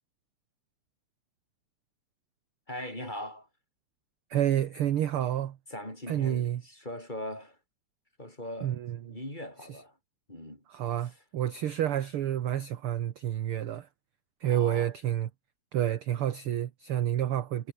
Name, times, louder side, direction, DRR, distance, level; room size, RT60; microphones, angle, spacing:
voice 1, 2.7-3.5 5.7-7.6 8.2-8.8 9.0-10.0 10.3-10.6 11.0-11.2 14.4-14.9, left 1 dB, 15° left, 6.7 m, -40 dB
voice 2, 4.3-5.6 6.1-6.6 8.6-9.0 10.7-13.9 14.4-15.3 15.7-17.7, right 11 dB, 60° right, 1.6 m, -29 dB
omnidirectional pair, 3.4 m